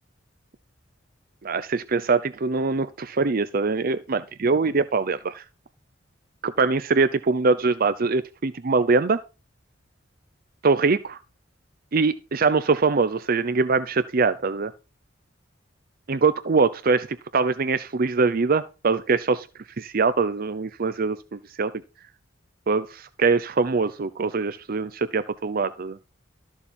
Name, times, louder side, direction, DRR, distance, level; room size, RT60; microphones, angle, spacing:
voice 1, 1.4-5.4 6.4-9.2 10.6-11.2 11.9-14.7 16.1-17.1 17.3-19.5 19.8-21.7 22.7-26.0, right 4 dB, 50° right, 13 dB, 0.6 m, -23 dB
13.0 x 7.1 x 4.3 m, 0.31 s
head